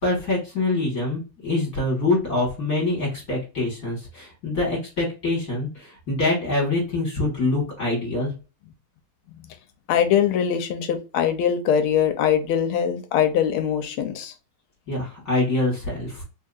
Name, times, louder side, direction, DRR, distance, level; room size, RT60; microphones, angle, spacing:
voice 1, 0.0-8.3 14.9-16.2, left 2 dB, 45° left, 1.8 m, -25 dB
voice 2, 9.9-14.3, left 8 dB, 90° left, 1.5 m, -22 dB
3.9 x 2.7 x 2.4 m
omnidirectional pair, 2.3 m